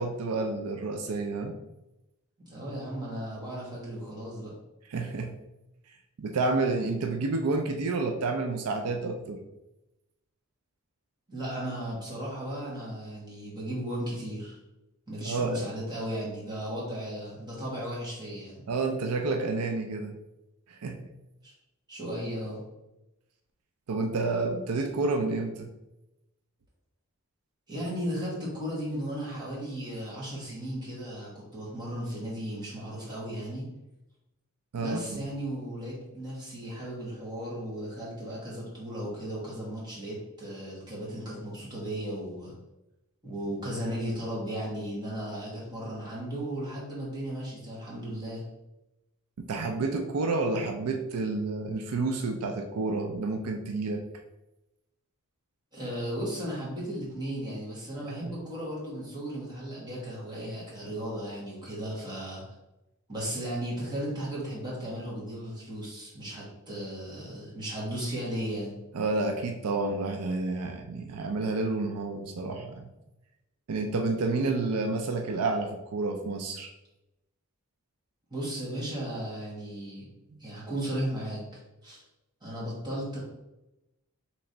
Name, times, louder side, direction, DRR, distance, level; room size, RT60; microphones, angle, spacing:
voice 1, 0.0-1.5 4.9-5.3 6.2-9.4 15.2-15.6 18.7-20.1 20.7-21.0 23.9-25.7 34.7-35.2 49.4-54.0 58.0-58.3 68.9-72.8 73.7-76.7 80.3-80.4, right 3 dB, 85° right, 5 dB, 0.5 m, -30 dB
voice 2, 2.5-4.5 11.3-14.6 15.1-18.6 21.4-21.5 21.9-22.6 27.7-33.7 34.8-42.5 43.2-48.4 55.7-62.4 63.1-68.7 78.3-80.1 80.4-81.4 81.8-82.0 82.4-83.2, equal, 20° right, -6 dB, 1.4 m, -35 dB
3.4 x 3.0 x 4.0 m, 0.95 s
head